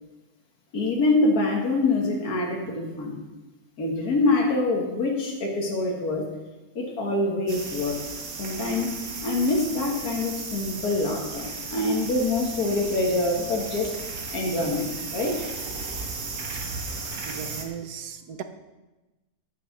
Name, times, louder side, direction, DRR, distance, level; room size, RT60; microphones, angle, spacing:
voice 1, 0.7-3.2 3.8-6.3 6.8-8.0 8.4-8.9 9.2-13.9 14.3-15.4, left 2 dB, 80° left, -1 dB, 2.1 m, -25 dB
sound 1, 7.5-17.6, right 4 dB, 65° right, 1.8 m, -35 dB
voice 2, 17.3-18.4, right 7 dB, 85° right, 8 dB, 1.4 m, -36 dB
10.0 x 8.2 x 6.0 m, 1.1 s
omnidirectional pair, 1.6 m